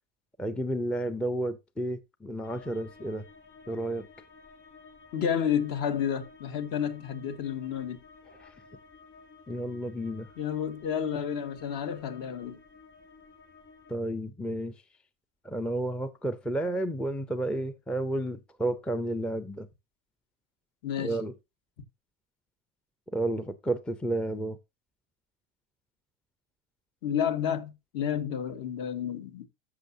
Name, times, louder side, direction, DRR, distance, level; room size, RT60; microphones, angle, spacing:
voice 1, 0.4-3.2 3.7-4.1 8.4-8.6 9.5-10.3 13.9-14.7 15.4-19.7 21.0-21.3 23.1-24.6, right 1 dB, 5° left, 0.5 m, -31 dB
sound 1, 2.4-14.0, left 4 dB, 25° left, 2.2 m, -54 dB
voice 2, 5.1-8.0 10.4-12.6 20.8-21.2 27.0-29.5, left 8 dB, 55° left, 1.9 m, -30 dB
13.5 x 6.4 x 2.7 m
supercardioid pair, 115°, 41 cm